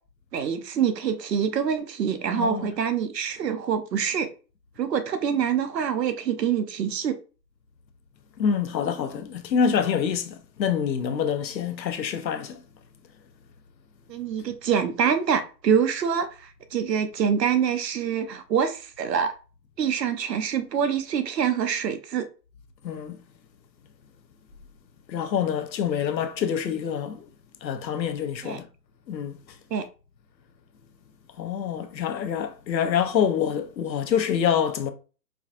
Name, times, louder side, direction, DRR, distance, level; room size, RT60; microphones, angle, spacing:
voice 1, 0.3-4.3 4.8-7.2 14.1-19.3 19.8-22.3 28.4-28.6 29.7-29.8, right 7 dB, 75° right, 0.8 m, -25 dB
voice 2, 2.4-2.7 8.4-12.6 22.8-23.2 25.1-27.3 27.6-28.7 29.1-29.4 31.4-34.9, left 7 dB, 90° left, 0.8 m, -26 dB
4.7 x 2.5 x 2.4 m
hypercardioid pair, 165°, 50 cm